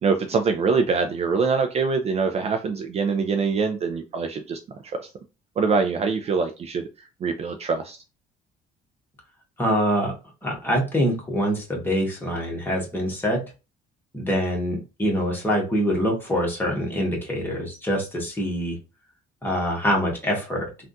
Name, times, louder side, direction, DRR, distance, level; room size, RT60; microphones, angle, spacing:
voice 1, 0.0-4.6 5.0-5.1 5.6-6.9 7.2-8.0, right 5 dB, 40° right, 6 dB, 0.4 m, -24 dB
voice 2, 9.6-10.1 10.4-13.4 14.1-18.8 19.4-20.7, equal, 10° left, -2 dB, 1.3 m, -25 dB
3.4 x 2.4 x 2.6 m, 0.30 s
cardioid pair, 110°, 17 cm